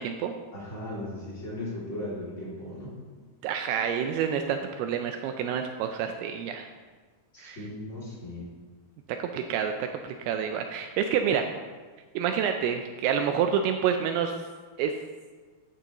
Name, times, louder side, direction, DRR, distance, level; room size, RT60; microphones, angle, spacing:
voice 1, 0.0-0.4 3.4-6.7 7.4-7.6 9.1-11.5 12.2-14.3 14.8-14.9, right 8 dB, 85° right, 6 dB, 2.5 m, -28 dB
voice 2, 0.5-3.0 7.3-8.5, left 1 dB, 20° left, -6 dB, 2.1 m, -37 dB
13.5 x 9.5 x 3.0 m, 1.4 s
omnidirectional pair, 4.7 m